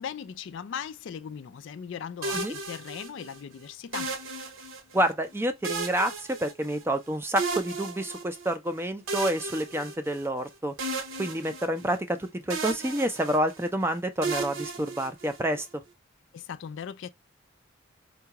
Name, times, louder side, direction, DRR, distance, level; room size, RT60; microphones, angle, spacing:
voice 1, 0.0-4.1 16.3-17.1, left 7 dB, 60° left, 0.3 m, -38 dB
sound 1, 2.2-3.4 3.9-5.1 5.6-7.0 7.4-8.5 9.1-10.4 10.8-12.2 12.5-13.7 14.2-15.6, right 3 dB, 75° right, 0.8 m, -34 dB
voice 2, 4.9-10.7 11.2-15.8, right 1 dB, 10° right, 0.4 m, -28 dB
4.6 x 2.3 x 2.8 m
head